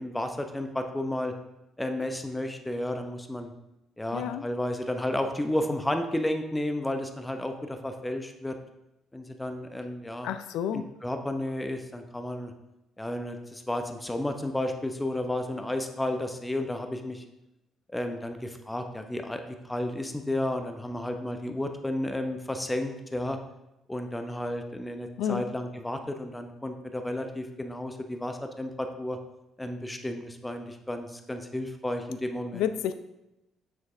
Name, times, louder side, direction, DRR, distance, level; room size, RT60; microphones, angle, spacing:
voice 1, 0.0-1.3 1.8-3.5 4.0-8.5 9.1-10.3 10.7-12.5 13.0-17.2 17.9-23.4 23.9-29.2 29.6-32.7, left 1 dB, 10° left, 6 dB, 0.8 m, -32 dB
voice 2, 4.1-4.4 10.2-10.9 25.2-25.5 32.5-32.9, left 9 dB, 65° left, 11 dB, 0.4 m, -30 dB
7.3 x 6.1 x 3.3 m, 0.91 s
figure-of-eight pair, 45°, 0 cm